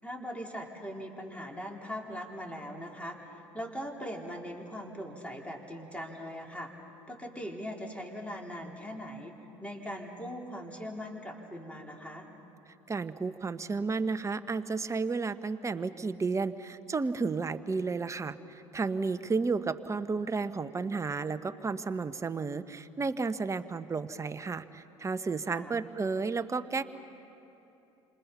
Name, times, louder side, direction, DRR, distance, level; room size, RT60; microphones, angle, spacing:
voice 1, 0.0-6.7 7.1-12.3 19.2-19.4 25.5-25.8, equal, 10° left, 0 dB, 4.4 m, -40 dB
voice 2, 12.9-26.8, right 4 dB, 20° right, 11 dB, 1.1 m, -32 dB
30.0 x 26.5 x 5.7 m, 3.0 s
figure-of-eight pair, 65°, 15 cm